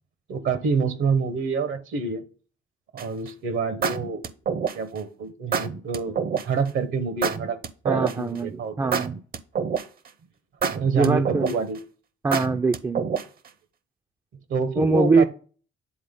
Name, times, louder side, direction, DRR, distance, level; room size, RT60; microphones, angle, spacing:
voice 1, 0.3-2.2 2.9-4.2 4.7-7.6 7.8-8.9 10.7-11.8 14.5-15.3, right 4 dB, 80° right, 11 dB, 1.2 m, -27 dB
sound 1, 3.0-3.3 3.8-5.0 5.5-6.4 7.2-8.4 8.9-10.1 10.6-11.8 12.3-13.5, right 6 dB, 50° right, 0.7 m, -26 dB
voice 2, 7.9-9.2 11.0-11.5 12.2-13.1 14.8-15.2, right 3 dB, 15° right, 6 dB, 0.3 m, -23 dB
8.7 x 3.8 x 3.7 m, 0.40 s
cardioid pair, 90°, 20 cm